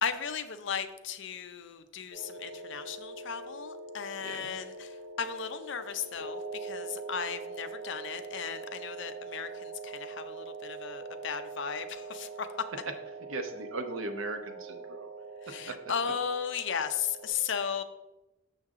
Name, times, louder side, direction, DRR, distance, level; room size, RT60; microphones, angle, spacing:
voice 1, 0.0-4.9 5.2-12.5 15.5-17.8, left 7 dB, 60° left, 10 dB, 0.6 m, -36 dB
sound 1, 2.1-17.3, right 3 dB, 60° right, 2.0 m, -43 dB
voice 2, 4.2-4.6 13.3-15.1 15.7-15.8, right 2 dB, 80° right, 7 dB, 0.8 m, -38 dB
6.5 x 6.4 x 3.6 m, 1.0 s
head